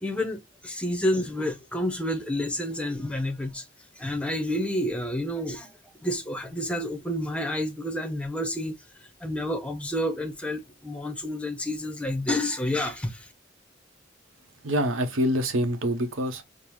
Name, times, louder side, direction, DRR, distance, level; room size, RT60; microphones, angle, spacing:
voice 1, 0.0-3.7 4.0-5.7 6.0-8.7 9.2-13.3, left 1 dB, 5° left, 0.5 m, -29 dB
voice 2, 14.6-16.4, equal, 90° right, 0.8 m, -25 dB
5.2 x 2.0 x 3.0 m
head